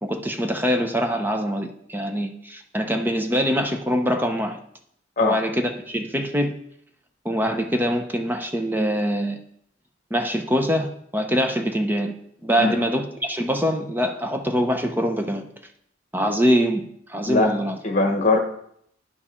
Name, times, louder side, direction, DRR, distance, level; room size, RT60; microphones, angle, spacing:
voice 1, 0.0-4.6 5.2-6.5 7.2-9.4 10.1-12.1 12.4-15.4 16.1-16.8 17.1-17.8, equal, 10° right, 5 dB, 0.6 m, -24 dB
voice 2, 17.8-18.4, left 3 dB, 35° left, 4 dB, 1.3 m, -20 dB
9.9 x 4.6 x 5.6 m, 0.69 s
head